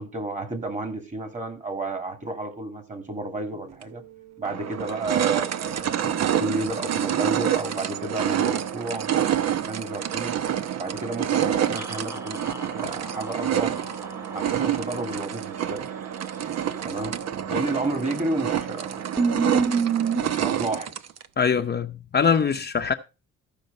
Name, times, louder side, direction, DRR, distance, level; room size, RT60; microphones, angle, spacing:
voice 1, 0.0-4.0 4.4-9.1 9.6-10.3 10.7-12.4 12.7-13.8 14.3-15.8 16.8-17.1 17.5-19.1 20.1-20.9, right 2 dB, 25° right, 2.8 m, -31 dB
sound 1, 3.8-3.9 4.4-21.3, right 10 dB, 60° right, 0.8 m, -27 dB
sound 2, 11.7-15.1 17.9-18.3 18.6-18.7 19.2-20.2, right 5 dB, 10° right, 1.3 m, -29 dB
voice 2, 21.4-22.9, left 6 dB, 35° left, 0.7 m, -22 dB
14.5 x 5.2 x 5.3 m
cardioid pair, 90°, 30 cm